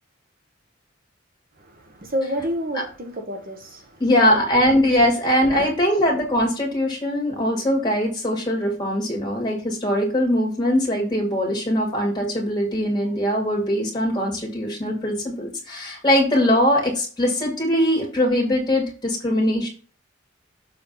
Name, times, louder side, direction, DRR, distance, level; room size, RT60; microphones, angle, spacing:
voice 1, 1.6-4.0, equal, 45° right, 1.0 m, -29 dB
voice 2, 4.0-19.7, equal, 20° left, 2.3 m, -21 dB
6.9 x 3.5 x 5.4 m
head